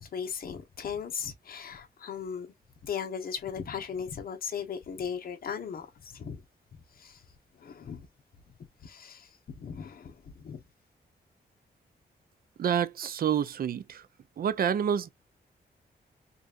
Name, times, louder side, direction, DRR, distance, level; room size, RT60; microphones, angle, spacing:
voice 1, 0.0-2.5 2.8-6.4 7.0-7.2 7.6-8.1 8.8-10.6, left 7 dB, 60° left, 1.1 m, -37 dB
voice 2, 12.6-14.0 14.4-15.1, right 8 dB, 60° right, 0.5 m, -28 dB
5.2 x 2.5 x 2.5 m
wide cardioid pair, 170°, 17 cm